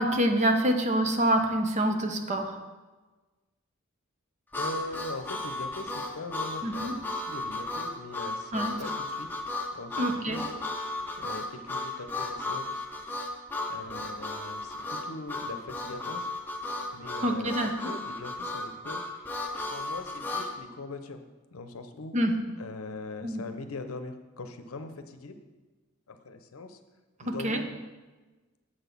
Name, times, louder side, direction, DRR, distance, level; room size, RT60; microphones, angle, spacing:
voice 1, 0.0-2.6 6.6-7.0 8.5-8.8 10.0-10.4 17.2-17.9 22.1-22.4 23.2-23.4 27.2-27.6, right 1 dB, 35° right, 5 dB, 0.7 m, -26 dB
Harmonica, 4.5-20.5, left 2 dB, 10° left, 0.8 m, -34 dB
voice 2, 4.6-10.5 11.2-12.9 13.7-16.3 16.9-19.0 19.7-21.2 21.5-22.2 22.6-25.4 26.1-26.8 27.2-27.6, left 3 dB, 80° left, 8 dB, 0.7 m, -41 dB
7.7 x 4.0 x 6.8 m, 1.2 s
head